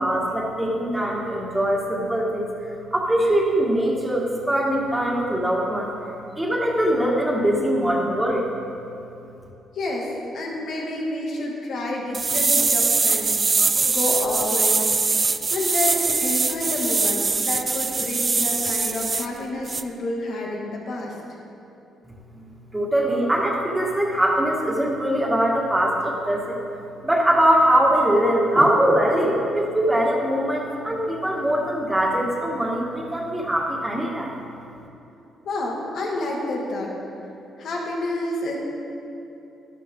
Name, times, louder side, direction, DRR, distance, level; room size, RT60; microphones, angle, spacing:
voice 1, 0.0-2.5 2.9-5.9 6.4-8.5 22.3-22.4 22.7-26.6 27.0-34.3, right 1 dB, 10° right, -3 dB, 1.9 m, -22 dB
voice 2, 9.7-13.4 13.9-15.1 15.5-21.2 35.4-36.9 37.6-38.6, left 2 dB, 65° left, -2 dB, 2.3 m, -29 dB
sound 1, 12.1-19.3 19.7-19.8, right 4 dB, 30° right, 0.5 m, -22 dB
12.5 x 12.5 x 3.8 m, 2.8 s
cardioid pair, 90°, 0 cm